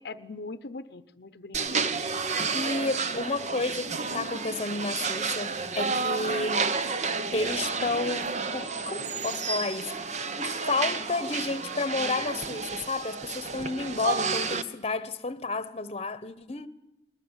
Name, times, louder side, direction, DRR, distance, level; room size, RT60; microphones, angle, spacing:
voice 1, 0.0-2.0, left 3 dB, 65° left, 0.8 m, -41 dB
sound 1, 1.5-14.6, right 4 dB, 40° right, 1.0 m, -31 dB
voice 2, 2.5-6.7 7.3-16.7, left 3 dB, 35° left, 1.0 m, -31 dB
21.5 x 20.0 x 8.2 m
head